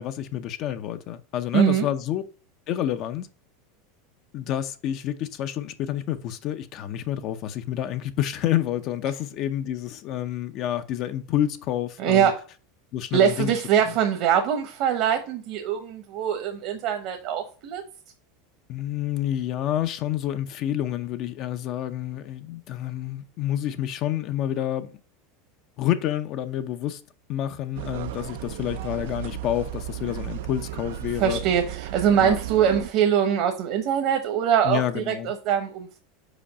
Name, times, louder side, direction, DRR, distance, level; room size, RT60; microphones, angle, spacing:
voice 1, 0.0-2.2 2.7-3.3 4.3-12.3 12.9-13.6 18.7-25.0 25.8-27.0 27.3-31.4 32.2-32.4 34.6-35.3, left 11 dB, 50° left, 0.6 m, -28 dB
voice 2, 1.5-1.9 12.0-12.4 13.1-17.8 31.2-36.0, right 8 dB, 55° right, 1.0 m, -23 dB
sound 1, 27.8-32.9, right 15 dB, 80° right, 0.4 m, -34 dB
5.1 x 4.6 x 5.6 m
supercardioid pair, 115°, 0 cm